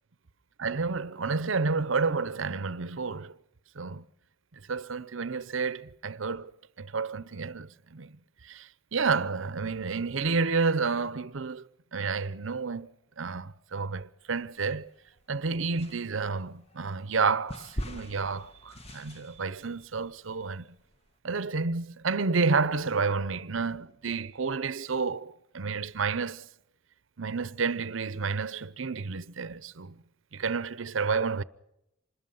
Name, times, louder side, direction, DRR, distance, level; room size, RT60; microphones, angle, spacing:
voice 1, 0.6-3.4 3.7-4.0 4.7-6.5 6.8-8.2 8.4-11.6 11.9-14.9 15.3-20.7 21.2-26.5 27.2-30.0 30.3-31.4, right 4 dB, 75° right, 0.8 m, -30 dB
sound 1, 14.4-15.2 15.8-21.1, equal, 30° left, 1.4 m, -42 dB
26.0 x 21.0 x 5.6 m
head